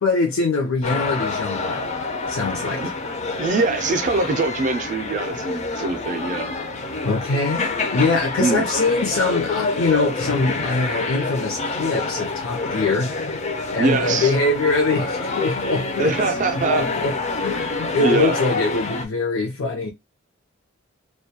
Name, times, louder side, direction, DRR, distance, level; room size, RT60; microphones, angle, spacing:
voice 1, 0.0-1.9 2.3-2.8 7.0-13.1 13.7-16.1 16.5-17.1 17.4-19.9, left 3 dB, 80° left, 0.6 m, -23 dB
sound 1, 0.8-19.1, left 3 dB, 35° left, 0.4 m, -27 dB
voice 2, 3.4-6.5 8.4-8.7 13.8-14.3 16.0-16.9 18.0-18.4, right 3 dB, 35° right, 0.3 m, -23 dB
2.2 x 2.1 x 2.7 m
head